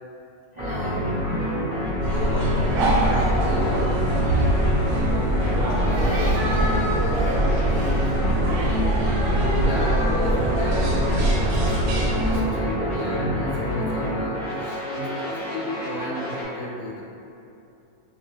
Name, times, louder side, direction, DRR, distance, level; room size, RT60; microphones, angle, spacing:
sound 1, 0.5-16.4, equal, 15° left, 0.6 m, -27 dB
voice 1, 0.5-1.3 5.1-9.1, equal, 70° right, -11 dB, 0.4 m, -36 dB
voice 2, 1.5-1.8 2.0-4.1 4.5-4.6 5.9-6.4 9.5-17.0, left 1 dB, 80° left, -4 dB, 1.1 m, -33 dB
sound 2, 2.0-12.4, right 1 dB, 90° right, 1.1 m, -23 dB
2.5 x 2.3 x 3.3 m, 2.8 s
omnidirectional pair, 1.5 m